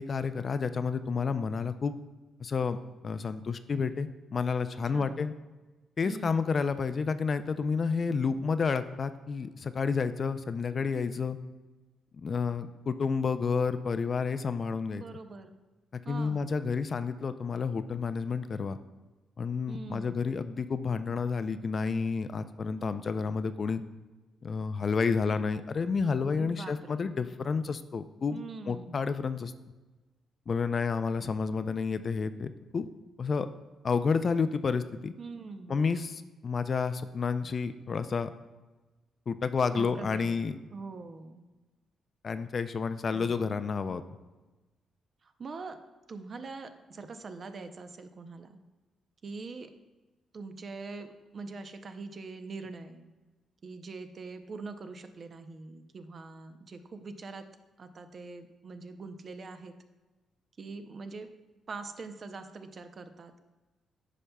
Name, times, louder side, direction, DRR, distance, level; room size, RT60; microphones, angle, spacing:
voice 1, 0.0-1.9 2.4-2.8 3.0-5.3 6.0-11.4 12.2-15.0 15.9-18.8 19.4-23.8 24.4-28.4 28.7-29.5 30.5-32.9 33.2-33.5 33.8-35.1 35.7-38.3 39.3-40.6 42.2-44.0, left 5 dB, 45° left, 11 dB, 0.3 m, -30 dB
voice 2, 4.9-5.2 6.0-6.5 14.9-15.5 16.0-16.4 19.7-20.3 26.4-27.0 28.3-29.0 31.2-31.3 35.2-35.8 39.7-40.4 40.7-41.4 43.1-43.4 45.2-45.8 46.1-48.6 49.2-49.7 50.3-53.1 53.6-57.5 57.8-59.7 60.6-61.3 61.7-63.4, right 4 dB, 45° right, 9 dB, 0.6 m, -43 dB
9.9 x 5.4 x 2.2 m, 1.2 s
cardioid pair, 85°, 0 cm